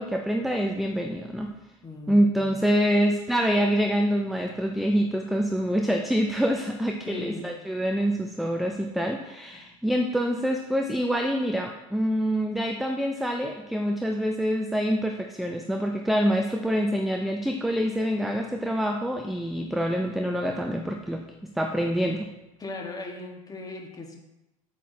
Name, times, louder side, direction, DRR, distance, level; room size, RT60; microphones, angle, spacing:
voice 1, 0.0-1.5 2.1-21.2 21.5-22.3, equal, ahead, 3 dB, 0.5 m, -26 dB
voice 2, 1.8-2.6 7.1-7.5 22.6-24.2, left 2 dB, 20° left, 1 dB, 1.4 m, -38 dB
8.3 x 7.5 x 2.8 m, 0.95 s
figure-of-eight pair, 70°, 18 cm